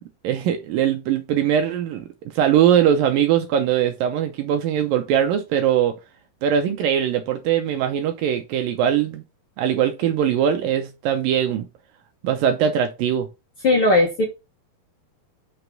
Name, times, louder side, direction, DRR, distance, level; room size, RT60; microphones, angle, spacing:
voice 1, 0.2-2.1 2.3-6.0 6.4-9.2 9.6-11.7 12.2-13.3, right 9 dB, 75° right, 2.2 m, -21 dB
voice 2, 13.6-14.2, left 2 dB, 50° left, 1.7 m, -17 dB
6.1 x 5.0 x 4.6 m
omnidirectional pair, 4.5 m